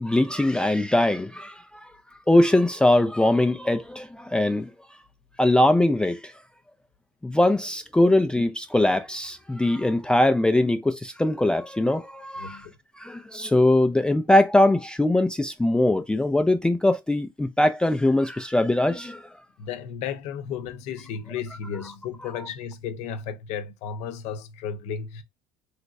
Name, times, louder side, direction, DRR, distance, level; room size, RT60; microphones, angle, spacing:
voice 1, 0.0-1.9 2.3-4.7 5.4-6.3 7.2-12.7 13.0-19.2, left 1 dB, 5° left, 0.4 m, -21 dB
voice 2, 12.4-12.7 19.6-25.2, left 7 dB, 65° left, 0.7 m, -34 dB
3.3 x 2.9 x 2.5 m
supercardioid pair, 90°, 12 cm